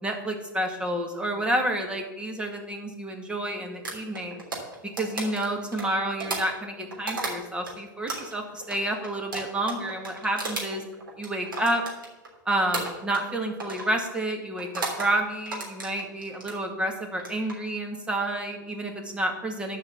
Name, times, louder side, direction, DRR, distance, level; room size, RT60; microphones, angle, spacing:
voice 1, 0.0-4.4 4.8-10.8 11.2-11.8 12.5-19.8, right 1 dB, 10° right, 3 dB, 2.0 m, -29 dB
sound 1, 3.8-7.7 8.1-12.3 12.7-13.3 13.6-13.9 14.6-15.1 15.4-16.6 17.1-17.5, right 3 dB, 90° right, 3.4 m, -34 dB
12.0 x 5.7 x 7.2 m, 1.0 s
hypercardioid pair, 115°, 11 cm